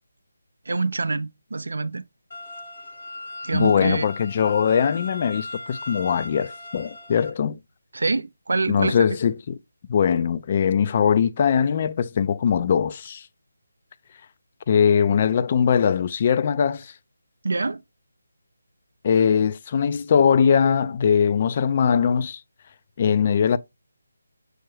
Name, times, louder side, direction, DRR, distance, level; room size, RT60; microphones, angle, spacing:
voice 1, 0.7-2.0 3.4-4.1 7.9-9.0 17.4-17.8, right 3 dB, 80° right, 0.4 m, -25 dB
sound 1, 2.3-7.3, left 2 dB, 60° left, 1.1 m, -38 dB
voice 2, 3.5-7.6 8.7-9.6 9.9-13.3 14.7-16.9 19.0-22.4 23.0-23.6, left 7 dB, 35° left, 0.3 m, -21 dB
6.2 x 2.2 x 3.2 m
figure-of-eight pair, 165°, 0 cm